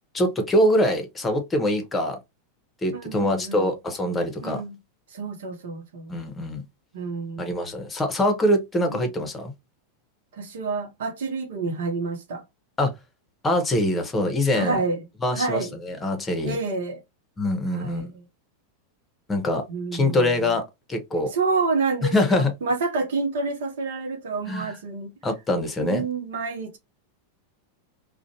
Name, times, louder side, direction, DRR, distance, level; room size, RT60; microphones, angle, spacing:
voice 1, 0.1-2.2 2.8-4.6 6.1-6.6 7.4-9.5 12.8-12.9 13.4-14.8 15.2-16.6 17.4-18.1 19.3-19.6 19.9-20.6 20.9-21.3 22.1-22.5 24.5-24.7 25.2-26.1, left 1 dB, 15° left, 0.8 m, -24 dB
voice 2, 2.9-3.7 4.4-4.8 5.1-6.2 6.9-7.7 8.9-9.1 10.3-12.4 14.5-15.0 15.3-15.8 16.4-17.0 17.7-18.2 19.7-20.5 21.3-25.1 25.8-26.8, right 4 dB, 65° right, 0.7 m, -29 dB
2.5 x 2.1 x 2.7 m
figure-of-eight pair, 90°, 0 cm